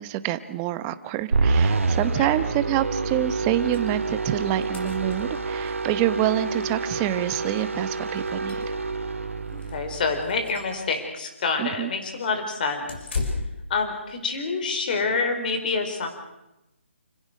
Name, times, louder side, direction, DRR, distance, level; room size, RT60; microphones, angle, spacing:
voice 1, 0.0-8.6 11.6-11.9, right 13 dB, 15° right, 13 dB, 0.9 m, -27 dB
sound 1, 1.3-10.7, right 3 dB, 85° right, 2.5 m, -27 dB
sound 2, 3.7-3.9 4.2-4.3 4.5-5.7 7.0-7.1 7.5-7.6 8.1-9.0 9.5-9.7 10.2-10.7 12.9-13.7, left 4 dB, 60° left, 6.2 m, -34 dB
voice 2, 9.5-12.9 13.7-16.1, left 4 dB, 40° left, 6 dB, 4.7 m, -27 dB
29.5 x 16.0 x 6.4 m, 0.94 s
hypercardioid pair, 160°, 7 cm